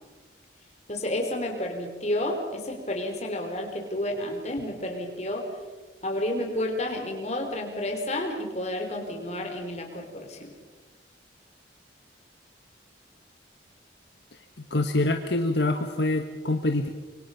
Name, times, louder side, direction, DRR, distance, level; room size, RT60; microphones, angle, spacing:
voice 1, 0.9-5.4 6.0-10.5, left 1 dB, 35° left, 3 dB, 4.1 m, -31 dB
voice 2, 14.7-16.9, left 2 dB, 70° left, 5 dB, 1.4 m, -25 dB
26.0 x 24.0 x 5.8 m, 1.3 s
head